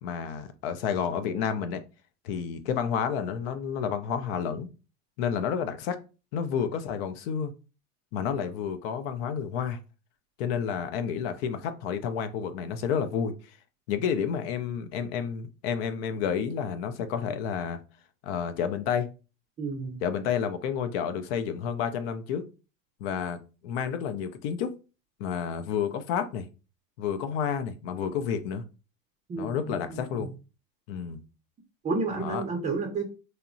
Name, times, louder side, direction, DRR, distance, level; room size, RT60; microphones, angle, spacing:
voice 1, 0.0-1.8 2.2-4.7 5.2-6.0 6.3-7.5 8.1-9.8 10.4-13.3 13.9-17.8 18.2-19.1 20.0-22.4 23.0-23.4 23.6-24.7 25.2-26.5 27.0-28.6 29.4-30.3 30.9-31.2 32.2-32.4, left 7 dB, 45° left, 0.4 m, -30 dB
voice 2, 19.6-20.0 29.3-30.3 31.8-33.1, right 3 dB, 15° right, 0.5 m, -31 dB
2.9 x 2.1 x 2.5 m
hypercardioid pair, 100°, 43 cm